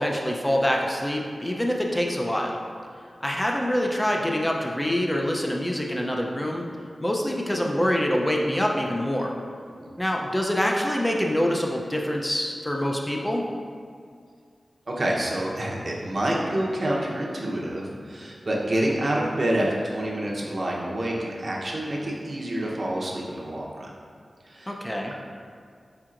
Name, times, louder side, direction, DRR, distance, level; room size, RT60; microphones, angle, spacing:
voice 1, 0.0-2.6 3.2-6.7 7.0-9.3 10.0-13.4 24.7-25.1, equal, 15° left, 0 dB, 0.5 m, -25 dB
voice 2, 14.9-23.9 24.5-24.7 25.0-25.1, right 1 dB, 55° right, -3 dB, 0.8 m, -27 dB
4.8 x 4.4 x 2.5 m, 2.2 s
cardioid pair, 55°, 0 cm